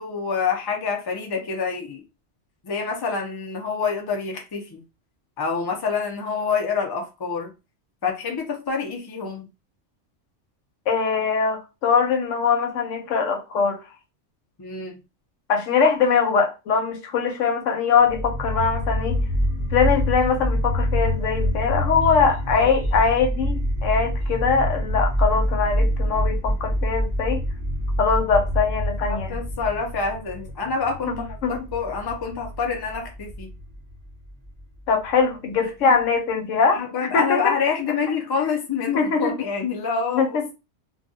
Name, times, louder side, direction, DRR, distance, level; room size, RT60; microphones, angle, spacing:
voice 1, 0.0-2.0 2.6-4.8 5.4-7.5 8.0-9.5 14.6-15.0 22.5-22.7 29.1-31.2 31.5-33.5 35.8-36.0 36.7-40.5, left 5 dB, 40° left, 0.3 m, -27 dB
voice 2, 10.9-13.8 15.5-19.2 19.7-27.4 28.0-29.4 31.1-31.5 34.9-37.5 38.9-39.3 40.1-40.4, left 5 dB, 85° left, 1.0 m, -22 dB
sound 1, 18.0-35.1, equal, 15° right, 0.8 m, -26 dB
2.3 x 2.2 x 2.6 m
omnidirectional pair, 1.3 m